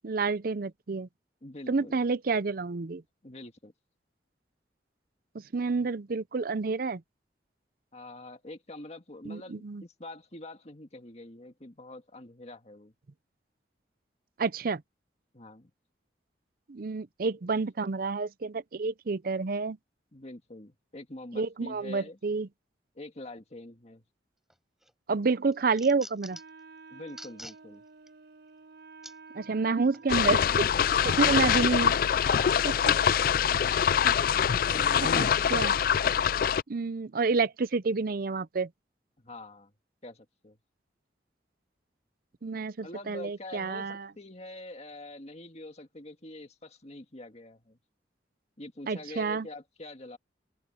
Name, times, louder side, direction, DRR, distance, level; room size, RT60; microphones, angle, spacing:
voice 1, 0.0-1.1 1.7-3.0 5.3-7.0 9.3-9.8 14.4-14.8 16.7-19.8 21.3-22.5 25.1-26.4 29.4-30.7 31.0-31.9 32.6-32.7 34.0-34.1 35.1-35.7 36.7-38.7 42.4-44.1 48.9-49.5, right 4 dB, 55° right, 0.6 m, -29 dB
voice 2, 1.4-2.0 3.2-3.7 7.9-12.9 15.3-15.7 20.1-22.2 23.0-24.0 26.9-27.8 31.0-31.9 32.3-33.8 34.6-35.5 39.2-39.7 40.0-40.6 42.8-47.8 48.6-50.2, left 2 dB, 40° left, 2.0 m, -45 dB
sound 1, 24.5-24.9 25.3-26.6 27.1-27.6 28.1-28.2 29.0-29.2 29.9-30.1, right 1 dB, ahead, 6.8 m, -46 dB
Wind instrument woodwind instrument, 26.3-32.1, right 4 dB, 70° right, 4.0 m, -51 dB
sound 2, 30.1-36.6, left 8 dB, 55° left, 0.4 m, -24 dB
open air
head